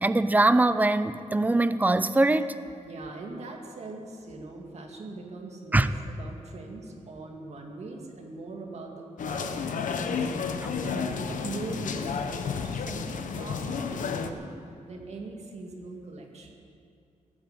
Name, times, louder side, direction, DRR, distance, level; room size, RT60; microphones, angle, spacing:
voice 1, 0.0-2.5 5.7-5.9, right 2 dB, 15° right, 12 dB, 0.5 m, -22 dB
voice 2, 2.9-10.3 10.7-14.5 14.9-16.6, right 3 dB, 60° right, 1 dB, 2.2 m, -41 dB
sound 1, 9.2-14.3, left 5 dB, 90° left, 1.0 m, -31 dB
18.0 x 8.8 x 8.2 m, 2.5 s
wide cardioid pair, 160°, 13 cm